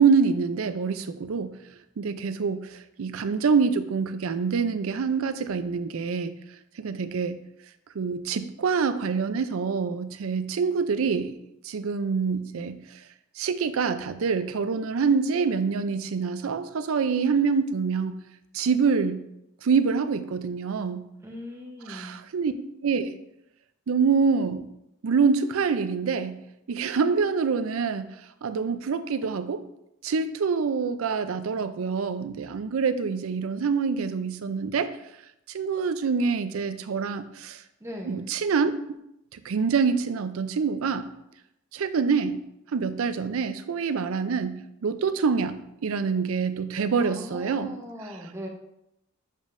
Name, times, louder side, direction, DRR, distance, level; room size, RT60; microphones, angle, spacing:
voice 1, 0.0-1.5 2.0-2.7 3.0-6.4 6.8-7.4 8.0-11.3 11.6-12.8 13.4-18.2 18.5-19.2 19.6-21.1 21.9-22.5 22.8-23.1 23.9-24.6 25.0-26.4 26.7-28.1 28.4-29.6 30.0-34.9 35.5-37.6 38.1-38.7 39.5-41.1 41.7-42.4 42.7-45.6 45.8-47.7, right 5 dB, 80° right, 11 dB, 0.4 m, -25 dB
voice 2, 21.2-22.2 37.8-38.3 46.9-48.5, equal, 15° right, 0 dB, 0.8 m, -39 dB
7.2 x 5.2 x 2.5 m, 0.83 s
head